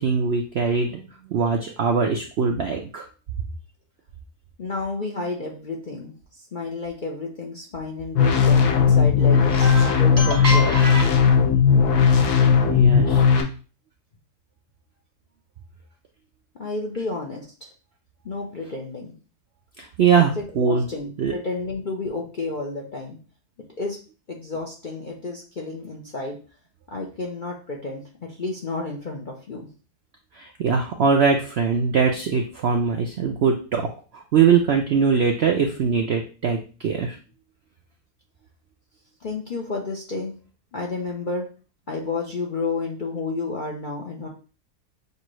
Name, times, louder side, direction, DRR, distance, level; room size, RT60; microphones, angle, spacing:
voice 1, 0.0-3.0 9.6-11.1 12.2-12.3 12.7-13.2 19.8-20.8 21.2-21.3 30.3-37.2, right 5 dB, 70° right, 3 dB, 0.6 m, -22 dB
voice 2, 4.6-9.7 10.0-10.8 16.5-17.7 18.2-19.1 20.2-23.2 23.8-24.0 24.3-26.4 26.9-29.7 39.2-40.3 40.7-41.5 41.9-44.3, left 3 dB, 50° left, -1 dB, 0.6 m, -31 dB
sound 1, 8.1-13.4, left 6 dB, 75° left, 1.3 m, -17 dB
6.6 x 2.6 x 3.1 m, 0.36 s
omnidirectional pair, 1.7 m